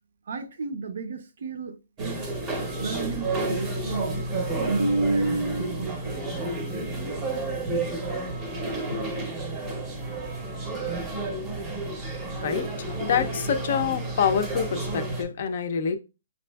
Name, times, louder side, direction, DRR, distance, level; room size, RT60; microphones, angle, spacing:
voice 1, 0.3-2.2 2.8-6.4, right 3 dB, 55° right, 0.5 m, -30 dB
sound 1, 2.0-15.2, right 2 dB, 10° right, 0.6 m, -31 dB
voice 2, 12.4-16.0, left 7 dB, 45° left, 0.4 m, -26 dB
5.2 x 2.5 x 2.2 m
hypercardioid pair, 170°, 0 cm